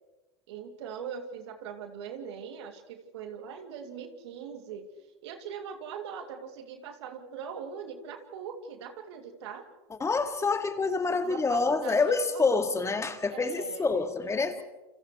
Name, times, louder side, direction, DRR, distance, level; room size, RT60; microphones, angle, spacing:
voice 1, 0.5-4.9 5.2-9.6 11.2-12.6 13.3-14.1 14.6-14.7, right 7 dB, 75° right, 4 dB, 2.6 m, -41 dB
voice 2, 10.0-14.6, left 4 dB, 20° left, 7 dB, 2.0 m, -27 dB
29.0 x 28.5 x 3.2 m, 1.1 s
hypercardioid pair, 85°, 14 cm